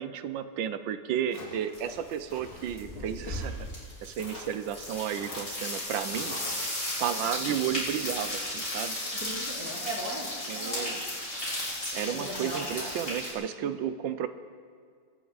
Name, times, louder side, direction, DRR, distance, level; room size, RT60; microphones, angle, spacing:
voice 1, 0.0-3.7 4.0-6.7 7.0-9.0 10.5-11.0 11.9-14.3, right 9 dB, 75° right, 11 dB, 1.3 m, -33 dB
Walk footsteps, 1.3-1.8 2.3-2.7 3.3-3.8 4.2-4.6 5.2-5.6 6.1-6.6, left 2 dB, 65° left, 2.8 m, -44 dB
sound 1, 1.7-2.1 2.4-13.3, left 1 dB, 30° left, 3.8 m, -35 dB
voice 2, 9.0-11.0 12.0-13.1, right 1 dB, 50° right, -4 dB, 3.0 m, -39 dB
22.0 x 9.4 x 4.1 m, 2.1 s
omnidirectional pair, 2.1 m